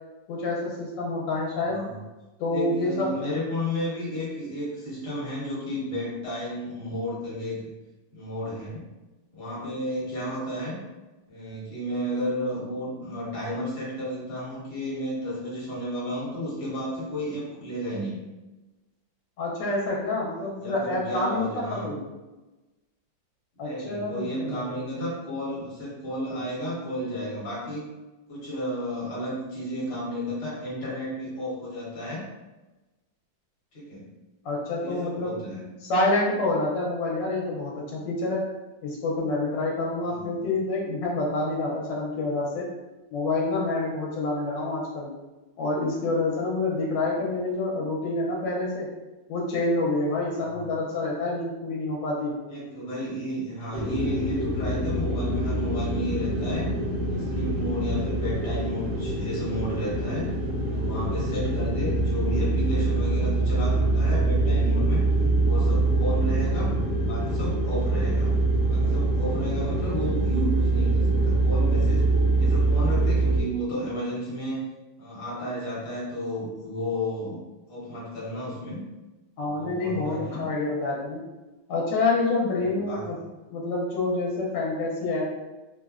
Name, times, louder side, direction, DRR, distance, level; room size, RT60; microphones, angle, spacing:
voice 1, 0.3-1.9 2.4-3.1 19.4-22.0 23.6-24.7 34.4-35.3 35.8-38.4 38.8-42.7 43.1-45.1 45.6-48.9 49.3-52.3 79.4-81.2 81.7-83.2 83.5-85.2, left 2 dB, 75° left, -3 dB, 1.2 m, -27 dB
voice 2, 2.5-7.6 8.1-8.8 9.3-10.8 11.3-18.2 20.6-21.9 23.6-27.9 28.3-32.3 33.7-34.1 34.8-35.6 40.0-40.4 50.4-50.7 52.5-56.7 57.1-60.3 60.7-65.1 65.4-66.7 67.0-68.3 68.7-72.1 72.4-74.7 75.0-77.4 77.7-78.8 79.4-80.5 82.6-83.0, equal, 40° left, -7 dB, 1.1 m, -32 dB
sound 1, 53.7-73.4, right 2 dB, 70° right, 0.9 m, -24 dB
3.3 x 2.1 x 2.3 m, 1.1 s
omnidirectional pair, 2.1 m